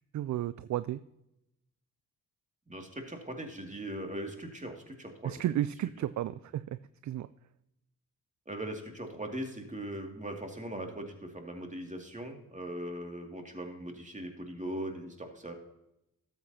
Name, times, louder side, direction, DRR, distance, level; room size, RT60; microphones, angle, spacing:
voice 1, 0.1-1.0 5.2-6.8 7.0-7.3, right 12 dB, 55° right, 15 dB, 0.4 m, -33 dB
voice 2, 2.7-5.4 8.5-15.5, right 1 dB, 20° right, 3 dB, 2.4 m, -40 dB
13.0 x 8.1 x 2.9 m, 0.87 s
supercardioid pair, 45°, 35 cm